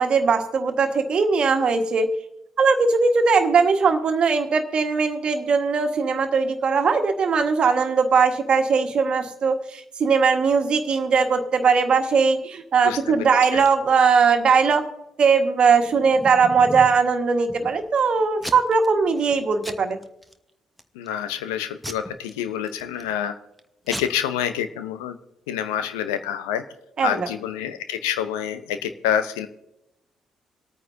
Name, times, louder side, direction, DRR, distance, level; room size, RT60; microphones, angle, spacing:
voice 1, 0.0-2.1 2.6-14.9 15.2-20.0 27.0-27.3, right 5 dB, 50° right, 6 dB, 1.6 m, -20 dB
Packing tape duct tape / Tearing, 15.6-17.0 17.5-18.0 18.4-18.9 19.2-19.4 19.6-20.3 20.8-21.2 21.8-23.1 23.6-23.7 23.9-24.0, equal, ahead, 1.2 m, -36 dB
voice 2, 20.9-23.3 23.9-25.2 25.5-26.6 27.0-29.5, left 9 dB, 80° left, 10 dB, 0.7 m, -27 dB
25.5 x 9.1 x 2.7 m, 0.84 s
hypercardioid pair, 45°, 2 cm